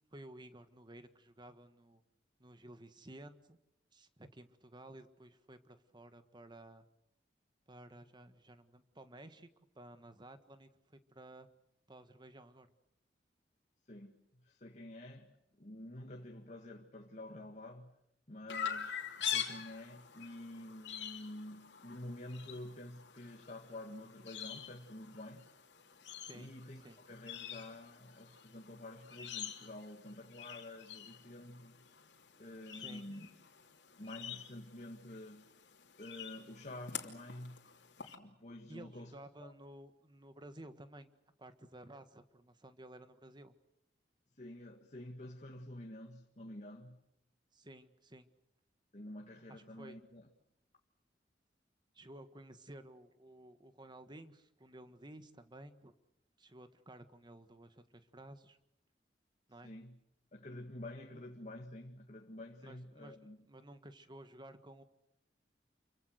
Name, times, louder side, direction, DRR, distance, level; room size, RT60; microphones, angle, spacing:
voice 1, 0.1-2.0 2.4-3.6 3.9-6.8 7.7-9.5 9.7-11.5 11.9-12.7 26.3-26.5 26.8-27.0 32.7-33.1 38.7-41.1 41.4-43.5 47.5-48.3 49.5-50.0 51.9-55.9 56.4-58.6 59.5-59.7 61.1-61.2 62.6-64.8, right 1 dB, 25° right, 1.6 m, -54 dB
voice 2, 13.9-17.9 18.3-25.5 26.3-31.8 32.4-33.3 34.0-35.5 36.0-37.6 38.2-39.5 44.3-47.0 48.9-50.3 59.6-60.0 60.3-63.5, left 1 dB, 40° left, 1.9 m, -49 dB
Chirp tweet, 18.5-38.1, left 8 dB, 70° left, 3.0 m, -46 dB
28.5 x 23.5 x 6.5 m
head